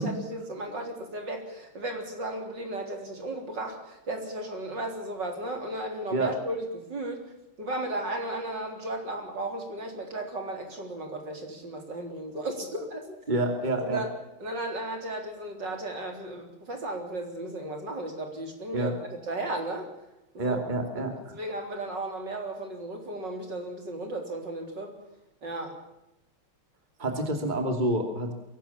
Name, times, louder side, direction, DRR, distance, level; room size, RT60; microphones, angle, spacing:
voice 1, 0.0-7.2 7.6-13.2 13.8-14.1 14.4-18.9 19.2-19.9 20.3-20.6 21.0-24.9 25.4-25.7, right 1 dB, 55° right, 4 dB, 4.5 m, -35 dB
voice 2, 13.3-14.0 18.7-18.9 20.4-21.4 27.0-28.3, right 1 dB, 20° right, 4 dB, 3.0 m, -28 dB
22.5 x 18.0 x 7.3 m, 0.90 s
omnidirectional pair, 2.4 m